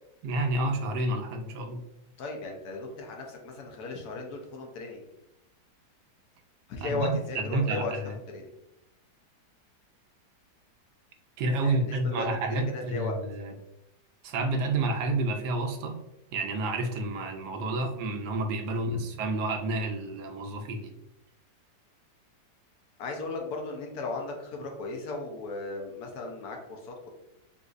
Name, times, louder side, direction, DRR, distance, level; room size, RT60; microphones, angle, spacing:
voice 1, 0.2-1.8 6.8-8.2 11.4-13.5 14.2-16.0 16.3-20.9, right 2 dB, 80° right, 5 dB, 1.2 m, -30 dB
voice 2, 2.2-5.0 6.7-7.9 8.3-8.5 11.6-12.3 12.7-13.2 18.7-19.0 23.0-27.1, left 3 dB, 70° left, 1 dB, 1.1 m, -36 dB
3.8 x 2.6 x 2.4 m, 0.86 s
omnidirectional pair, 1.8 m